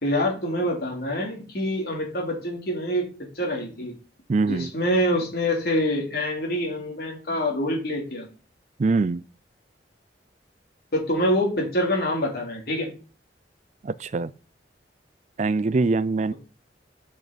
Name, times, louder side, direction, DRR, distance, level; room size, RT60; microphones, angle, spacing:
voice 1, 0.0-3.1 3.3-3.9 4.5-8.3 10.9-12.9, equal, 60° left, 3.0 m, -25 dB
voice 2, 4.3-4.7 8.8-9.2 13.8-14.3 15.4-16.3, right 3 dB, 40° right, 0.4 m, -23 dB
6.8 x 6.2 x 5.3 m
head